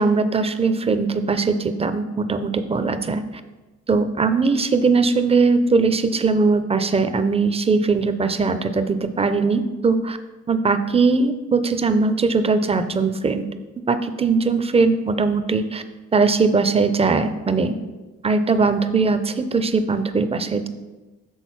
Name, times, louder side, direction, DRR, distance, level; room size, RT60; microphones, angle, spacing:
voice 1, 0.0-3.2 3.9-10.2 10.5-13.4 13.9-15.8 16.1-17.7 18.2-20.7, right 4 dB, 20° right, 10 dB, 0.5 m, -20 dB
6.4 x 3.8 x 5.8 m, 1.2 s
cardioid pair, 90°, 30 cm